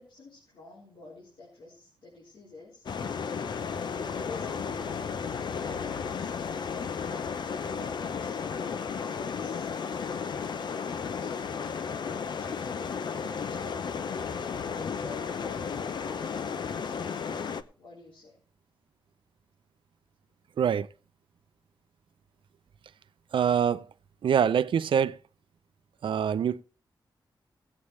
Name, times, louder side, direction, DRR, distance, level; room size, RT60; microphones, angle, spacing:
voice 1, 0.0-10.9 11.2-17.1 17.8-18.4, left 3 dB, 85° left, 4.6 m, -49 dB
sound 1, 2.9-17.6, left 6 dB, 60° left, 0.7 m, -33 dB
voice 2, 20.6-20.9 23.3-23.9 24.2-25.2 26.0-26.6, right 8 dB, 90° right, 0.6 m, -24 dB
18.0 x 8.6 x 3.2 m
wide cardioid pair, 175°, 8 cm